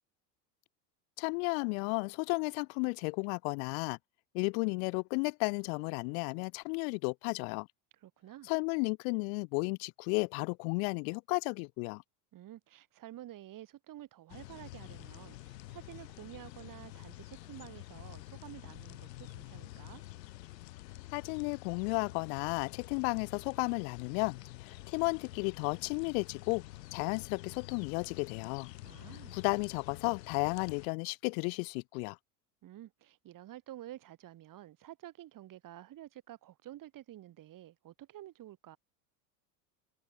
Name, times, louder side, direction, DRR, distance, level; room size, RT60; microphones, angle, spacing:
voice 1, 1.2-4.0 4.3-7.7 8.5-12.0 21.1-26.6 26.9-28.7 29.3-32.2, left 38 dB, 60° left, 0.7 m, -33 dB
voice 2, 8.0-8.5 12.3-20.0 28.8-29.4 32.6-38.8, right 13 dB, 40° right, 2.7 m, -50 dB
sound 1, 14.3-30.9, left 17 dB, 80° left, 2.5 m, -48 dB
hypercardioid pair, 100°, 49 cm